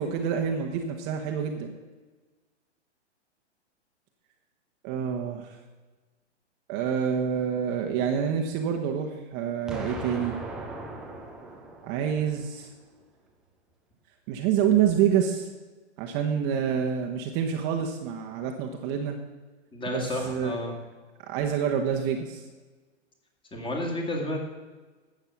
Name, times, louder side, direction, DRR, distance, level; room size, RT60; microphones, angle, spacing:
voice 1, 0.0-1.7 4.8-5.5 6.7-10.3 11.8-12.7 14.3-15.5 16.0-19.2 19.9-20.5 21.3-22.4, right 8 dB, 30° right, 3 dB, 1.0 m, -27 dB
Explosion, 9.7-12.6, right 2 dB, ahead, 0.3 m, -39 dB
voice 2, 19.7-20.7 23.5-24.4, left 1 dB, 15° left, 1 dB, 2.1 m, -31 dB
12.5 x 8.0 x 5.8 m, 1.3 s
hypercardioid pair, 135°, 35 cm